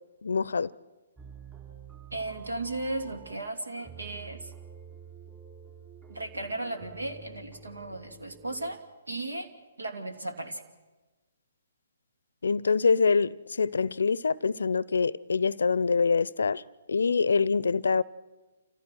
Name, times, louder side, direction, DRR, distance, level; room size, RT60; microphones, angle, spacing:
voice 1, 0.2-0.7 12.4-16.6 16.9-18.0, left 5 dB, 75° left, 0.5 m, -25 dB
sound 1, 1.2-8.8, right 6 dB, 15° right, 3.7 m, -49 dB
voice 2, 2.1-4.5 6.1-8.8 9.1-9.5 9.8-10.6, right 2 dB, 85° right, 2.3 m, -35 dB
28.5 x 15.0 x 6.3 m
figure-of-eight pair, 135°, 0 cm